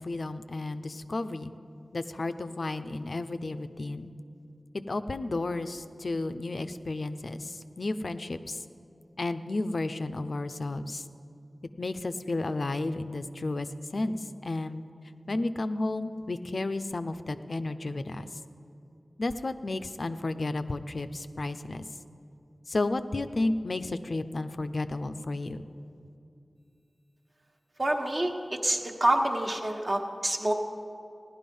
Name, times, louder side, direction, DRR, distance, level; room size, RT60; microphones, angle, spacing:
voice 1, 0.0-1.5 1.9-4.1 4.7-8.6 9.2-11.0 11.8-14.8 15.3-18.3 19.2-21.8 22.7-25.7, left 2 dB, 55° left, 11 dB, 0.5 m, -32 dB
voice 2, 27.8-28.3 28.6-30.5, right 1 dB, 40° right, 3 dB, 1.3 m, -27 dB
16.0 x 11.5 x 5.4 m, 2.6 s
wide cardioid pair, 75°, 0 cm